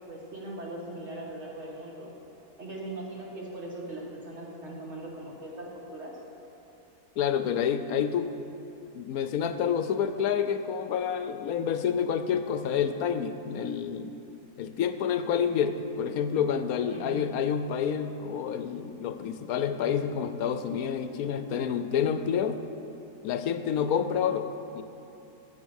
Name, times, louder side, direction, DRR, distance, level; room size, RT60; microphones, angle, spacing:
voice 1, 0.1-2.1 2.6-6.2 16.9-17.2, right 1 dB, 45° right, -3 dB, 2.3 m, -40 dB
voice 2, 7.2-8.3 8.9-14.2 14.6-22.6 23.2-24.8, left 7 dB, 75° left, 10 dB, 1.1 m, -28 dB
15.0 x 7.3 x 6.4 m, 2.9 s
omnidirectional pair, 1.6 m